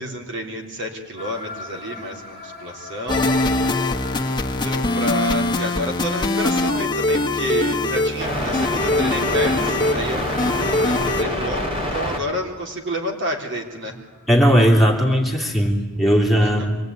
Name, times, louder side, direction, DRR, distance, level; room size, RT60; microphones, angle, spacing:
voice 1, 0.0-3.3 4.4-14.0 16.4-16.7, equal, 55° right, 2 dB, 3.3 m, -30 dB
sound 1, 1.2-12.2, left 1 dB, 25° right, 3.8 m, -30 dB
sound 2, 3.1-11.2, left 2 dB, 20° left, 1.4 m, -22 dB
voice 2, 14.3-16.8, equal, ahead, -1 dB, 3.3 m, -17 dB
25.0 x 20.5 x 9.5 m, 1.2 s
head